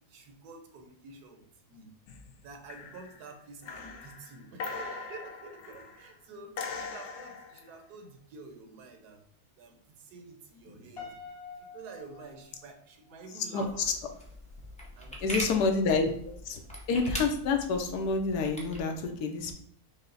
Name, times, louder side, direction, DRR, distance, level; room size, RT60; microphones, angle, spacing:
voice 1, 0.1-1.4 1.7-1.9 2.4-9.2 9.6-9.7 10.0-11.0 11.7-13.9 15.0-15.7, right 4 dB, 85° right, 4 dB, 1.3 m, -49 dB
sound 1, 2.1-2.4 2.7-3.2 3.6-6.0 6.6-7.7 10.7-10.9, left 4 dB, 65° left, 0.8 m, -41 dB
Piano, 11.0-13.2, left 5 dB, 30° left, 0.8 m, -47 dB
voice 2, 13.5-13.9 15.2-16.1 16.4-16.6 16.9-19.5, left 4 dB, 85° left, 5 dB, 1.2 m, -28 dB
sound 2, 13.6-18.8, equal, 10° left, 0.4 m, -41 dB
5.6 x 2.0 x 3.8 m, 0.65 s
omnidirectional pair, 1.6 m